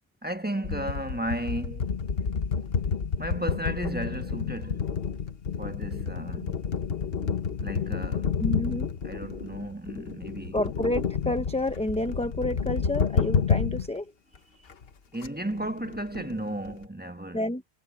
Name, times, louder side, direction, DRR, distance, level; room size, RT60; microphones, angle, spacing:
voice 1, 0.2-1.9 3.2-5.0 5.6-6.7 7.6-8.4 9.0-10.6 15.1-17.5, right 1 dB, 10° right, 1.2 m, -34 dB
sound 1, 0.6-13.9 14.4-14.5 14.7-14.9 15.2-15.3 15.5-16.9, left 6 dB, 60° left, 1.3 m, -30 dB
voice 2, 8.4-8.9 10.5-14.1 17.3-17.6, left 1 dB, 5° left, 0.6 m, -29 dB
omnidirectional pair, 1.1 m